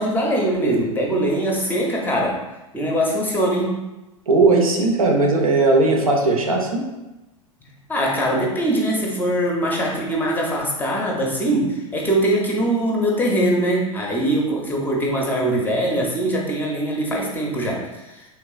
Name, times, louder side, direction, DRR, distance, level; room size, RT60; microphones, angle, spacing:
voice 1, 0.0-2.4 2.7-3.8 7.9-18.3, right 1 dB, 10° left, -2 dB, 0.6 m, -22 dB
voice 2, 4.3-6.8, right 3 dB, 80° right, 1 dB, 0.6 m, -17 dB
3.4 x 3.0 x 2.3 m, 1.0 s
figure-of-eight pair, 90°, 18 cm